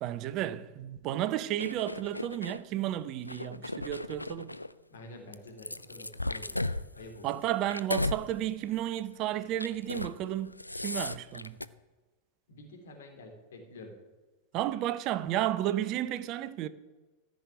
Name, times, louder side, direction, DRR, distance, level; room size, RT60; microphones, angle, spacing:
voice 1, 0.0-4.6 7.2-10.5 10.8-11.6 14.5-16.7, right 13 dB, 40° right, 0.7 m, -32 dB
sound 1, 1.6-2.6 3.2-4.7 5.3-8.2 8.6-8.9 9.5-10.2 10.4-11.7, left 2 dB, 85° left, 0.4 m, -36 dB
voice 2, 4.9-6.6 6.9-7.3 12.5-13.9, left 2 dB, 60° left, 3.1 m, -48 dB
14.5 x 6.4 x 9.6 m
figure-of-eight pair, 90°, 0 cm